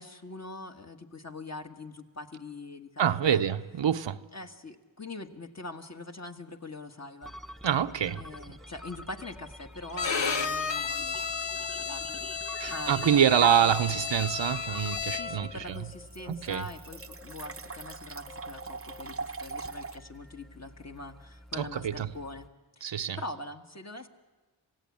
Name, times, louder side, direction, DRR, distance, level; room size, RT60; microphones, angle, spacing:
voice 1, 0.0-3.4 4.3-7.3 8.2-14.1 15.1-22.5 22.8-24.1, left 2 dB, 35° left, 1.6 m, -43 dB
voice 2, 3.0-4.2 7.6-8.2 12.6-15.8 16.3-16.6 21.5-22.1 22.8-23.2, right 9 dB, 75° right, 0.8 m, -26 dB
sound 1, 7.2-22.5, equal, ahead, 0.8 m, -48 dB
Bowed string instrument, 9.9-15.5, left 5 dB, 85° left, 1.1 m, -33 dB
sound 2, 10.6-10.9 11.4-11.5 13.4-13.5 15.3-15.4 15.7-20.0, right 5 dB, 30° right, 0.7 m, -39 dB
27.5 x 16.5 x 8.6 m
wide cardioid pair, 70°, 44 cm